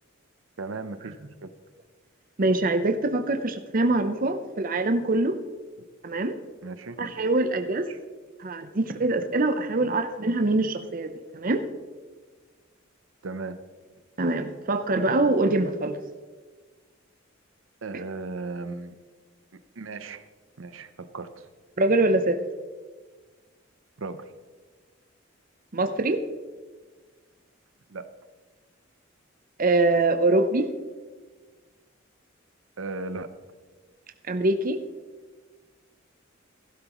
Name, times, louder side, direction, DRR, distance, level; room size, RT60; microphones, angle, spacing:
voice 1, 0.6-1.2 1.4-1.5 6.6-7.0 7.9-8.0 9.9-10.0 13.2-13.6 17.8-19.0 19.8-20.3 20.6-21.5 24.0-24.3 27.9-28.1 32.8-33.3, right 3 dB, 80° right, 11 dB, 0.7 m, -36 dB
voice 2, 2.4-5.4 6.0-6.4 7.0-7.9 8.4-11.6 14.2-16.0 21.8-22.4 25.7-26.2 29.6-30.7 34.3-34.8, right 2 dB, 45° right, 8 dB, 0.7 m, -24 dB
16.5 x 12.0 x 3.1 m, 1.4 s
head